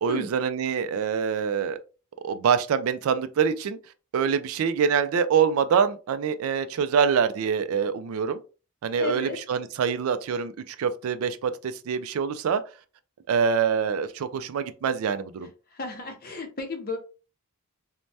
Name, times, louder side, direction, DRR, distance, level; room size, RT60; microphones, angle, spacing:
voice 1, 0.0-1.8 2.2-3.8 4.1-8.4 8.8-12.6 13.3-15.5, right 6 dB, 70° right, 0.3 m, -25 dB
voice 2, 9.0-9.4 15.7-17.0, left 3 dB, 40° left, 0.6 m, -33 dB
3.2 x 2.1 x 2.6 m
head